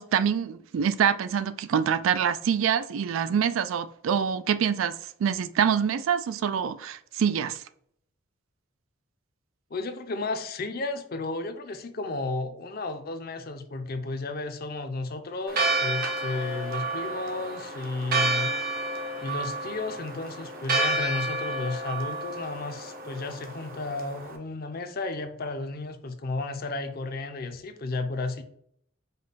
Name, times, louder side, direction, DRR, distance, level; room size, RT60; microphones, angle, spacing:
voice 1, 0.0-4.9 5.2-7.6, right 7 dB, 80° right, 0.3 m, -25 dB
voice 2, 9.7-18.5 19.2-28.4, left 3 dB, 50° left, 0.6 m, -33 dB
Church bell, 15.5-24.4, right 2 dB, 45° right, 0.7 m, -30 dB
5.2 x 2.2 x 4.0 m
head